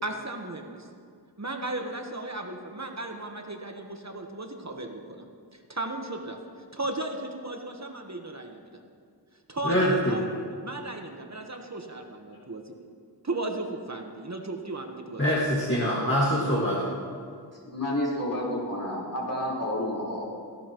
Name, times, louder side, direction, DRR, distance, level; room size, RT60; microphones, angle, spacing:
voice 1, 0.0-0.9 1.4-5.2 5.7-6.4 6.7-8.7 9.5-12.7 13.2-15.5, right 2 dB, 40° right, 3 dB, 1.1 m, -35 dB
voice 2, 9.6-10.2 15.2-16.8, equal, 30° left, -6 dB, 1.9 m, -24 dB
voice 3, 17.7-20.2, left 1 dB, 45° left, -6 dB, 4.1 m, -30 dB
17.5 x 15.0 x 3.0 m, 2.2 s
wide cardioid pair, 45°, 42 cm